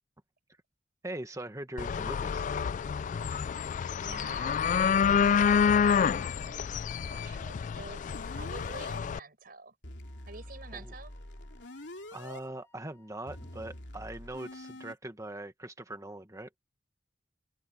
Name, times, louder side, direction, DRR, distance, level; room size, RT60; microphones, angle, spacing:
voice 1, 1.0-2.5 10.7-10.9 12.1-16.5, right 1 dB, 20° right, 1.7 m, -41 dB
sound 1, 1.8-9.2, left 7 dB, 45° left, 0.3 m, -28 dB
voice 2, 3.9-6.7 7.0-9.7 10.3-11.1, right 3 dB, 55° right, 4.9 m, -49 dB
sound 2, 8.1-9.0 9.8-12.4 13.3-14.9, left 1 dB, 80° left, 3.2 m, -45 dB
Wind instrument woodwind instrument, 10.0-13.9, left 3 dB, 15° left, 6.2 m, -67 dB
head